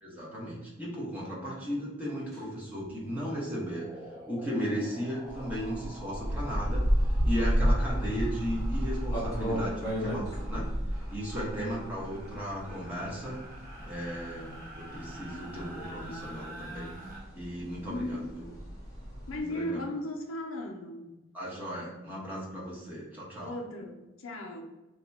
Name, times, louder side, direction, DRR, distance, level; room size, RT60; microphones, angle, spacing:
voice 1, 0.0-3.9 4.3-13.4 13.8-16.9 17.3-18.5 19.4-19.8 21.3-23.5, equal, 10° right, -6 dB, 0.8 m, -36 dB
sound 1, 2.3-2.5 2.8-17.2, right 1 dB, 40° right, 0.9 m, -48 dB
sound 2, 5.3-19.4, equal, 15° left, 0.9 m, -31 dB
voice 2, 11.4-11.8 17.9-18.3 19.3-21.2 23.4-24.6, left 1 dB, 80° left, 2 dB, 0.5 m, -37 dB
2.8 x 2.3 x 4.0 m, 1.0 s
head